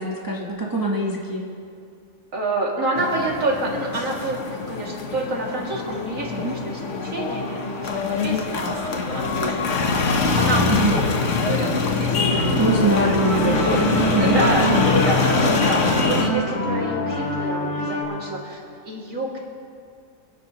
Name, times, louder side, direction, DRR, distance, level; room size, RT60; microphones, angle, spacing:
voice 1, 0.0-1.5 6.3-6.6 10.7-11.0 12.6-14.5, right 1 dB, 15° right, -2 dB, 1.0 m, -24 dB
voice 2, 2.3-9.7 10.0-11.0 11.3-12.6 13.0-13.2 13.4-18.6 18.8-19.4, right 1 dB, 80° right, -3 dB, 2.7 m, -28 dB
sound 1, 3.0-16.3, left 4 dB, 65° left, 1.4 m, -23 dB
sound 2, 12.2-18.0, right 1 dB, 35° left, 2.5 m, -26 dB
26.0 x 10.5 x 2.9 m, 2.3 s
omnidirectional pair, 1.4 m